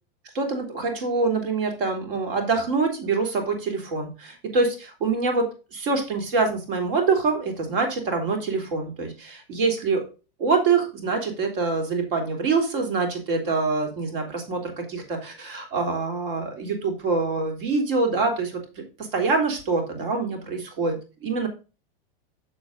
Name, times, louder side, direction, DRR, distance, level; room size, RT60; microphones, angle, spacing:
voice 1, 0.3-10.0 10.4-18.6 19.1-21.5, right 4 dB, 65° right, 4 dB, 3.4 m, -25 dB
7.2 x 7.2 x 3.9 m, 0.33 s
supercardioid pair, 155°, 29 cm